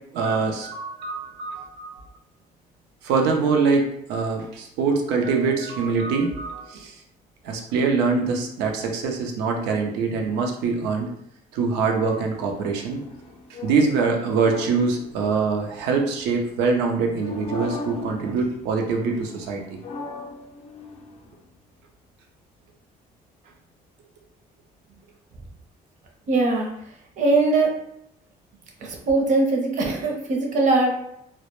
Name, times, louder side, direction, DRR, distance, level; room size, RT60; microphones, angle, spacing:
voice 1, 0.1-2.0 3.0-6.9 7.4-11.1 11.5-13.0 13.6-19.8, right 4 dB, 90° right, 2 dB, 0.5 m, -24 dB
sound 1, 12.3-16.4 17.1-18.8 19.0-21.4, left 2 dB, 40° left, 0.4 m, -38 dB
voice 2, 26.3-27.7 28.8-31.1, right 3 dB, 50° right, 1 dB, 0.6 m, -21 dB
2.1 x 2.0 x 2.9 m, 0.75 s
cardioid pair, 110°, 17 cm